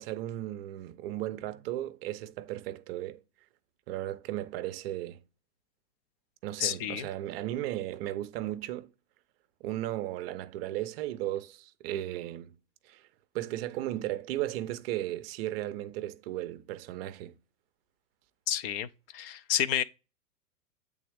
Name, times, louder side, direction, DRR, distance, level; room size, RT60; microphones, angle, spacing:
voice 1, 0.0-3.2 3.9-5.2 6.4-8.9 9.6-12.6 12.8-13.0 13.3-17.4, right 14 dB, 35° right, 0.6 m, -35 dB
voice 2, 6.6-7.1 18.5-18.9 19.1-19.8, left 11 dB, 35° left, 0.6 m, -29 dB
8.4 x 3.5 x 3.5 m
hypercardioid pair, 115°, 49 cm